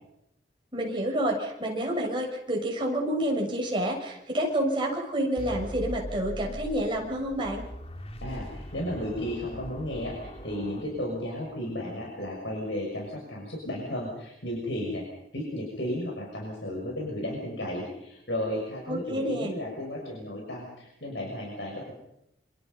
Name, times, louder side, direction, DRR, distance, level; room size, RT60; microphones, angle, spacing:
voice 1, 0.7-7.6 18.9-19.5, right 1 dB, 30° right, 0 dB, 6.6 m, -29 dB
sound 1, 5.4-11.5, equal, 35° left, 2.0 m, -41 dB
voice 2, 8.2-15.0 15.3-21.9, left 1 dB, 85° left, -1 dB, 6.3 m, -34 dB
27.5 x 25.5 x 5.6 m, 0.82 s
head